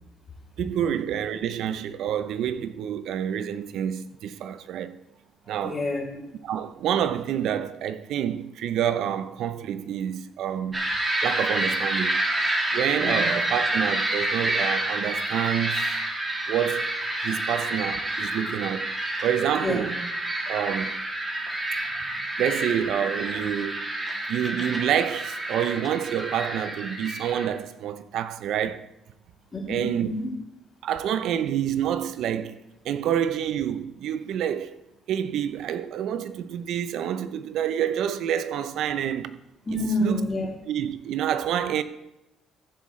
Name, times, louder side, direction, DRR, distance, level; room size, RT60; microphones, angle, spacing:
voice 1, 0.6-5.0 5.5-5.8 6.4-10.8 11.2-12.2 12.7-15.8 16.5-16.9 17.2-18.9 19.2-19.9 20.5-20.9 21.7-21.8 22.4-23.9 24.3-28.9 29.7-30.2 30.8-32.6 32.8-34.8 35.1-39.4 40.0-40.2 40.7-41.8, right 9 dB, 70° right, 0.6 m, -28 dB
voice 2, 5.6-6.2 13.0-13.3 19.6-19.8 29.5-30.3 39.6-40.6, left 1 dB, 30° left, 3.2 m, -28 dB
sound 1, 10.7-27.5, right 1 dB, 25° right, 2.6 m, -28 dB
14.5 x 7.3 x 3.2 m
supercardioid pair, 70°, 0 cm